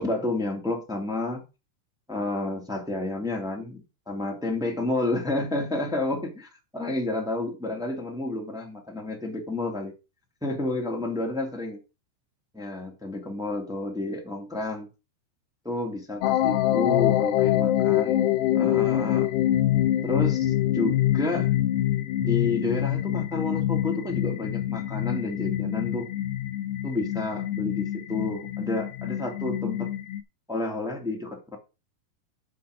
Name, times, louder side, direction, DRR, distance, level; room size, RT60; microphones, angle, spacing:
voice 1, 0.0-1.4 2.1-9.9 10.4-11.8 12.5-14.9 15.6-18.3 18.5-19.3 20.0-21.5 22.2-26.1 26.8-29.9 30.5-31.6, left 2 dB, ahead, 1.1 m, -30 dB
sound 1, 16.2-30.2, left 13 dB, 75° left, 2.6 m, -25 dB
7.8 x 5.8 x 6.6 m
omnidirectional pair, 5.3 m